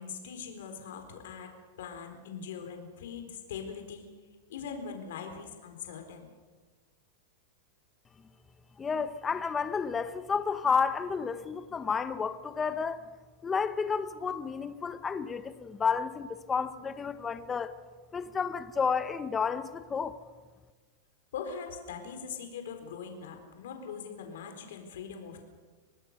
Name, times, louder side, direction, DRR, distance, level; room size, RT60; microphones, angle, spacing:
voice 1, 0.0-1.5 1.8-4.0 4.5-6.3 21.3-25.4, left 6 dB, 80° left, 4.2 m, -41 dB
voice 2, 8.8-13.1 13.4-17.7 18.1-20.2, left 5 dB, 15° left, 0.8 m, -31 dB
26.0 x 19.5 x 6.6 m
supercardioid pair, 155°, 0 cm